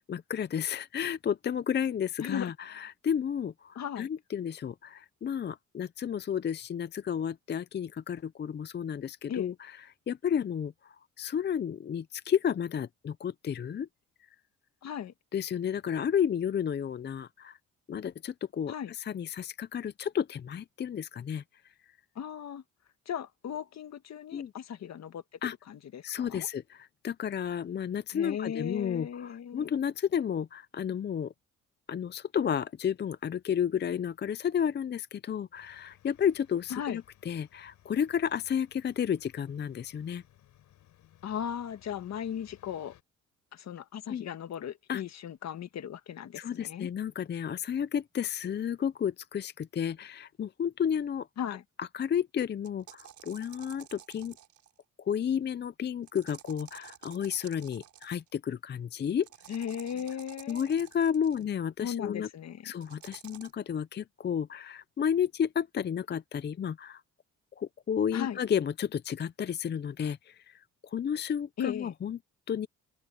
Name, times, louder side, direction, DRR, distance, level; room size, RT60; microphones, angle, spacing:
voice 1, 0.1-9.8 10.1-13.9 15.3-17.6 17.9-21.4 24.3-24.5 25.4-25.5 26.0-31.3 31.9-40.2 44.1-44.2 44.9-45.0 46.4-51.3 51.8-54.3 55.0-59.3 60.5-62.3 62.6-67.0 67.6-72.2 72.5-72.7, left 8 dB, 35° left, 0.6 m, -32 dB
voice 2, 2.2-2.5 3.7-4.1 9.3-9.5 14.8-15.1 18.7-18.9 22.1-22.6 23.0-25.2 25.7-26.5 28.1-29.7 36.7-37.0 41.2-43.0 43.5-46.9 51.4-51.6 59.5-60.7 61.8-62.7 68.1-68.4 71.6-71.9, left 9 dB, 60° left, 1.7 m, -37 dB
sound 1, 35.5-43.0, left 12 dB, 75° left, 7.2 m, -61 dB
sound 2, 52.6-54.8 56.1-58.3 59.2-61.4 62.8-63.5, right 10 dB, 70° right, 4.0 m, -52 dB
open air
cardioid pair, 90°, 30 cm